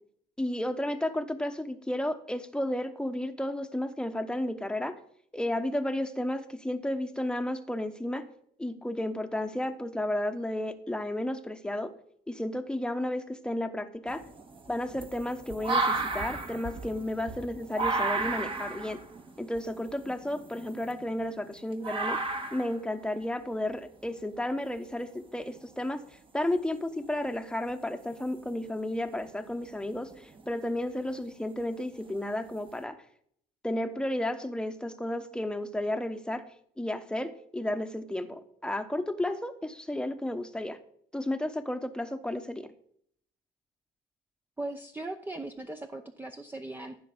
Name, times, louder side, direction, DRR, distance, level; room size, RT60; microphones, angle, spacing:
voice 1, 0.4-5.0 5.3-8.3 8.6-11.9 12.3-14.2 14.7-19.0 19.4-22.2 22.5-26.0 26.3-33.0 33.6-36.5 36.8-40.8 41.1-42.7, left 1 dB, 5° left, 7 dB, 1.1 m, -32 dB
sound 1, 14.1-21.4 21.8-22.8 24.1-24.2 25.5-25.6 28.2-28.5 28.9-29.3 29.9-30.5 31.1-31.2 32.2-32.3 32.7-32.8, right 3 dB, 30° right, 1.4 m, -33 dB
voice 2, 44.6-47.0, right 2 dB, 10° right, 5 dB, 0.7 m, -38 dB
14.5 x 6.0 x 5.2 m, 0.64 s
cardioid pair, 110°, 17 cm